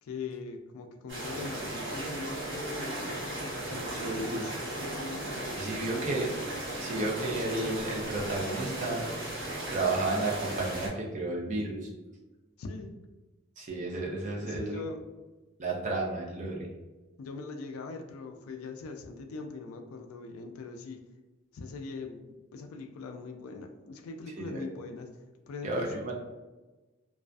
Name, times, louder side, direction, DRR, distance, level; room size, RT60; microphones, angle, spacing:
voice 1, 0.0-6.2 12.6-12.9 14.4-15.0 17.2-21.0 21.5-25.1 25.5-26.1, left 3 dB, 85° left, 6 dB, 0.3 m, -41 dB
sound 1, 1.1-10.9, right 1 dB, 60° right, 0.9 m, -36 dB
voice 2, 3.9-4.4 5.6-6.3 6.8-9.1 9.7-11.9 13.6-14.8 15.6-16.7 24.4-24.6 25.6-26.1, right 2 dB, 35° right, -1 dB, 0.5 m, -32 dB
2.4 x 2.4 x 2.2 m, 1.1 s
head